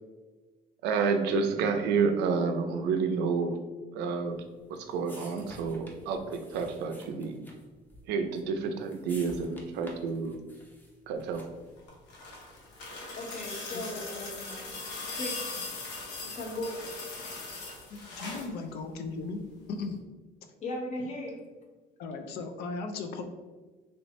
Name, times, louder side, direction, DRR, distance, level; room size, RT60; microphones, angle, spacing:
voice 1, 0.8-3.6 3.9-4.4 4.7-7.4 8.1-10.4 11.1-11.4, right 5 dB, 85° right, 6 dB, 0.4 m, -29 dB
sound 1, 4.3-11.8, equal, 10° left, 0.6 m, -52 dB
sound 2, 11.8-18.5 19.8-19.9, left 3 dB, 90° left, 0.8 m, -40 dB
voice 2, 13.1-14.8 15.1-15.9 16.2-17.3 20.6-21.4, left 1 dB, 45° left, 0 dB, 0.9 m, -38 dB
voice 3, 17.9-19.4 19.7-20.0 22.0-23.2, left 4 dB, 75° left, 6 dB, 0.4 m, -36 dB
3.2 x 2.6 x 3.0 m, 1.3 s
cardioid pair, 110°, 17 cm